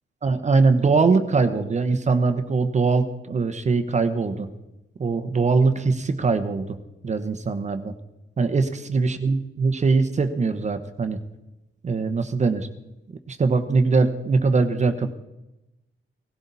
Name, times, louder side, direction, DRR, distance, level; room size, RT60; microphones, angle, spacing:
voice 1, 0.2-4.5 5.0-6.8 7.0-7.9 8.4-11.2 11.8-12.7 13.3-15.1, right 4 dB, 35° right, 9 dB, 1.0 m, -22 dB
18.0 x 16.0 x 4.1 m, 0.96 s
wide cardioid pair, 165°, 21 cm